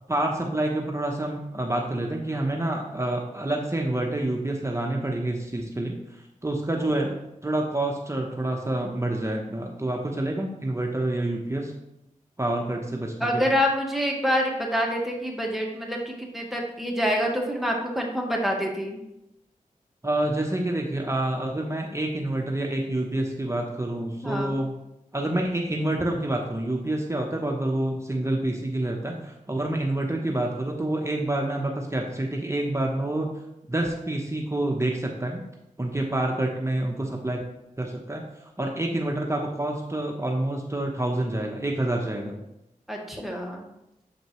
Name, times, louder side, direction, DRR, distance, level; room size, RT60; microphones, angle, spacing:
voice 1, 0.1-7.1 7.4-11.7 12.4-13.5 20.0-24.7 25.1-33.3 33.7-35.4 35.8-37.4 37.8-42.4, right 1 dB, 20° right, 0 dB, 0.9 m, -28 dB
voice 2, 13.2-19.0 24.2-24.6 42.9-43.6, equal, ahead, 0 dB, 1.7 m, -26 dB
7.6 x 5.2 x 3.1 m, 0.86 s
cardioid pair, 40°, 14 cm